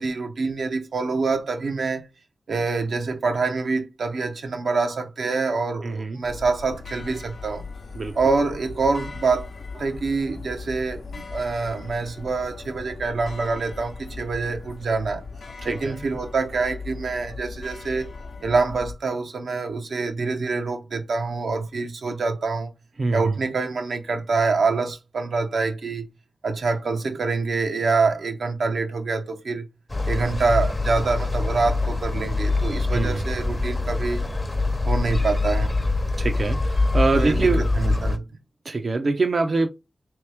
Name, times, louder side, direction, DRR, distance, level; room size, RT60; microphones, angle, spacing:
voice 1, 0.0-2.1 2.5-7.6 8.2-9.5 9.7-15.2 15.6-18.1 18.4-22.7 23.1-26.1 26.4-29.7 30.1-34.2 34.9-35.8 37.1-38.2, right 4 dB, 90° right, 0.8 m, -25 dB
voice 2, 5.8-6.2 8.0-8.2 15.6-15.9 23.0-23.4 32.9-33.2 36.2-37.6 38.6-39.7, right 3 dB, 60° right, 0.5 m, -24 dB
sound 1, 6.2-18.9, left 4 dB, 80° left, 0.7 m, -39 dB
sound 2, 29.9-38.2, left 3 dB, 35° left, 0.7 m, -24 dB
3.4 x 3.0 x 3.3 m
cardioid pair, 50°, 0 cm